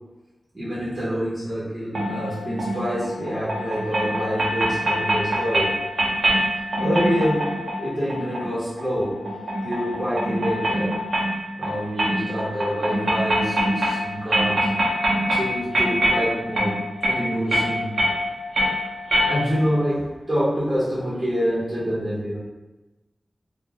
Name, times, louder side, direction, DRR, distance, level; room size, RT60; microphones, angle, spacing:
voice 1, 0.5-5.7 6.8-7.5 7.8-9.2 9.6-11.0 11.6-14.7 15.3-16.8 17.0-18.0 19.3-22.4, equal, 25° right, -9 dB, 0.8 m, -26 dB
sound 1, 1.9-19.8, equal, 85° right, 0.6 m, -25 dB
2.2 x 2.1 x 3.3 m, 1.1 s
wide cardioid pair, 105°, 0 cm